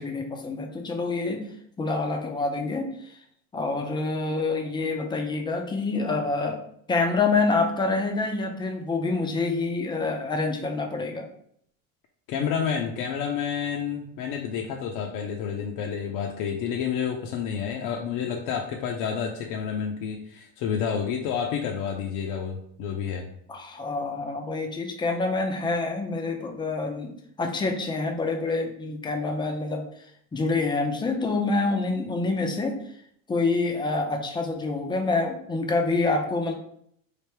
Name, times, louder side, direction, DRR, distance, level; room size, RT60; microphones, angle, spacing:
voice 1, 0.0-1.5 1.8-3.2 3.5-6.6 6.9-11.3 23.5-27.1 27.4-29.8 30.3-32.8 33.3-36.5, left 3 dB, 10° left, 3 dB, 0.4 m, -27 dB
voice 2, 12.3-23.3, left 7 dB, 50° left, 1 dB, 0.6 m, -29 dB
3.3 x 2.6 x 4.5 m, 0.67 s
supercardioid pair, 135°, 42 cm